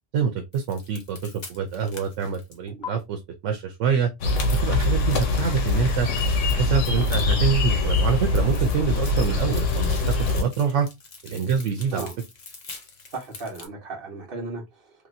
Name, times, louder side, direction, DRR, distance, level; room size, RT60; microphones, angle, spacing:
voice 1, 0.1-4.1 4.6-6.1 6.5-10.9 11.2-12.1, right 7 dB, 85° right, 1.0 m, -26 dB
sound 1, 0.5-2.9 4.8-7.5 7.7-13.7, left 5 dB, 45° left, 0.8 m, -43 dB
sound 2, 4.2-10.4, left 3 dB, 85° left, 1.1 m, -23 dB
voice 2, 13.1-15.1, right 3 dB, 50° right, 1.2 m, -36 dB
3.2 x 2.9 x 2.5 m
omnidirectional pair, 1.2 m